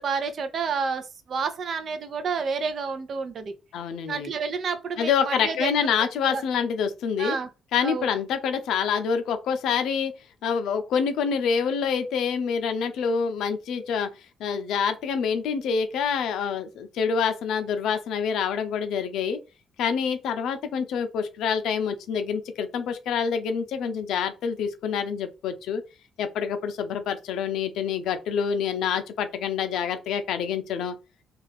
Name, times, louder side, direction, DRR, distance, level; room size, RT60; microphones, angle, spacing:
voice 1, 0.0-3.5 4.1-5.9 6.2-6.4 7.2-7.5 7.8-8.1, right 5 dB, 55° right, 0.6 m, -29 dB
voice 2, 3.7-4.3 5.0-7.4 7.7-10.1 10.4-14.1 14.4-19.4 19.8-25.8 26.2-30.9, left 6 dB, 80° left, 0.5 m, -26 dB
2.4 x 2.3 x 3.4 m
cardioid pair, 90°, 0 cm